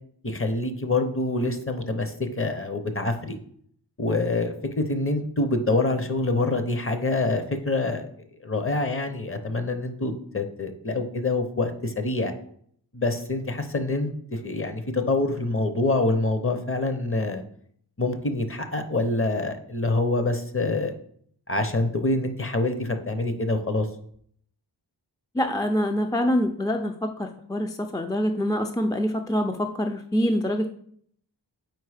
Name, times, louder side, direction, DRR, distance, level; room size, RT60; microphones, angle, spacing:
voice 1, 0.2-3.4 4.0-8.1 8.4-12.3 12.9-17.4 18.0-21.0 21.5-23.9, left 2 dB, 30° left, 7 dB, 0.7 m, -26 dB
voice 2, 25.3-30.7, equal, 10° left, 4 dB, 0.3 m, -25 dB
4.6 x 4.6 x 4.9 m, 0.64 s
wide cardioid pair, 75°, 41 cm